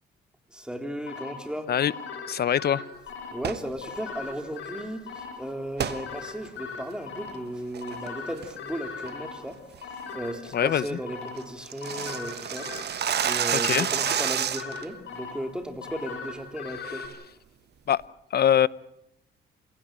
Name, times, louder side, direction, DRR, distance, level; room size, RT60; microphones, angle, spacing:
voice 1, 0.5-1.7 3.3-12.7 13.2-17.1, equal, 5° right, 3.8 m, -36 dB
sound 1, 1.1-17.1, left 5 dB, 75° left, 7.9 m, -40 dB
voice 2, 2.3-2.8 10.5-11.0 13.6-13.9 17.9-18.0 18.3-18.7, left 9 dB, 55° left, 0.8 m, -23 dB
sound 2, 3.3-3.7 5.8-6.0 6.5-6.6 7.1-7.4 7.7-8.1 8.4-8.7 9.0-9.1 9.5-9.8 10.1-10.2 10.5-10.6 10.8-10.9 11.2-14.8, right 9 dB, 55° right, 1.4 m, -29 dB
28.0 x 16.5 x 9.0 m
cardioid pair, 90°, 20 cm